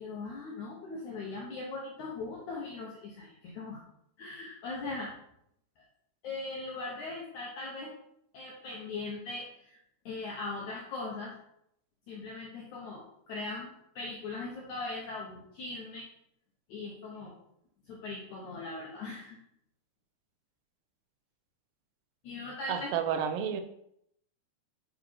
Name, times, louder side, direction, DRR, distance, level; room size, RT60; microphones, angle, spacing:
voice 1, 0.0-3.8 4.2-5.1 6.2-7.9 8.3-9.8 10.0-11.3 12.1-16.1 16.7-17.3 17.9-19.4 22.2-22.9, left 3 dB, 75° left, -3 dB, 1.8 m, -40 dB
voice 2, 22.7-23.6, right 8 dB, 80° right, 8 dB, 2.7 m, -30 dB
9.0 x 4.0 x 4.4 m, 0.75 s
omnidirectional pair, 4.8 m